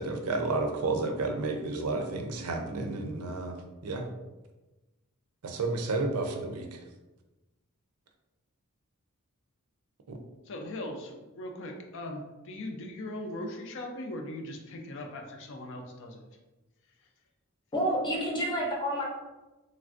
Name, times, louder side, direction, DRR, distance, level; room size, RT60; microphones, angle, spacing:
voice 1, 0.0-3.6 3.8-4.0 5.4-6.7, right 3 dB, 85° right, 4 dB, 0.5 m, -31 dB
voice 2, 10.5-16.2, left 1 dB, 60° left, 3 dB, 0.4 m, -39 dB
voice 3, 17.7-19.0, equal, 20° left, -3 dB, 0.7 m, -29 dB
3.2 x 2.4 x 2.4 m, 1.1 s
head